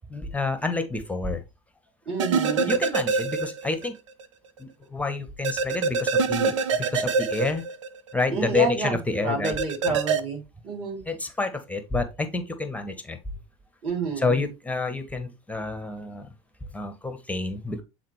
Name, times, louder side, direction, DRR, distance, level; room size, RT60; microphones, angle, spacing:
voice 1, 0.1-1.4 2.7-4.0 4.6-6.6 6.9-7.6 8.1-9.5 9.9-10.0 11.1-13.2 14.2-16.3 16.7-17.8, left 3 dB, 10° left, 1.0 m, -28 dB
voice 2, 2.1-2.8 8.3-11.0 13.8-14.4, right 3 dB, 35° right, 3.3 m, -29 dB
sound 1, 2.2-3.9 4.2-4.3 5.4-8.3 9.4-10.2, right 4 dB, 65° right, 0.6 m, -25 dB
7.8 x 4.0 x 3.1 m
figure-of-eight pair, 70°, 16 cm